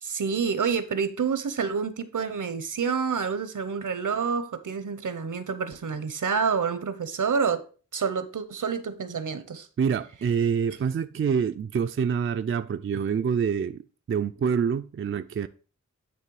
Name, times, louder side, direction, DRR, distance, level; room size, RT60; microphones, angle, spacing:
voice 1, 0.0-7.6 7.9-9.7, right 6 dB, 80° right, 0.8 m, -28 dB
voice 2, 9.8-13.8 14.1-15.5, right 7 dB, 45° right, 0.4 m, -26 dB
9.4 x 3.2 x 4.7 m
wide cardioid pair, 55°, 31 cm